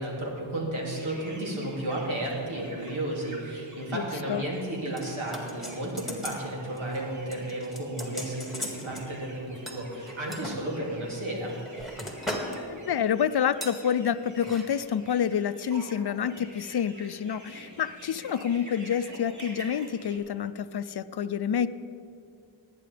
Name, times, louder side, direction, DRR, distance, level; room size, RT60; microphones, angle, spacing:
voice 1, 0.0-11.6, right 1 dB, 90° right, -3 dB, 2.6 m, -33 dB
sound 1, 0.9-20.2, right 1 dB, 40° right, 2.5 m, -49 dB
voice 2, 3.9-4.4 12.7-21.7, left 8 dB, 55° left, 14 dB, 0.5 m, -28 dB
sound 2, 5.0-6.4 6.7-7.0 7.3-9.1 9.7-10.6 11.2-12.6 12.9-13.1 13.6-13.8 14.4-14.6 14.9-15.0, left 1 dB, ahead, 2.0 m, -38 dB
19.5 x 9.2 x 3.4 m, 2.5 s
wide cardioid pair, 50°, 47 cm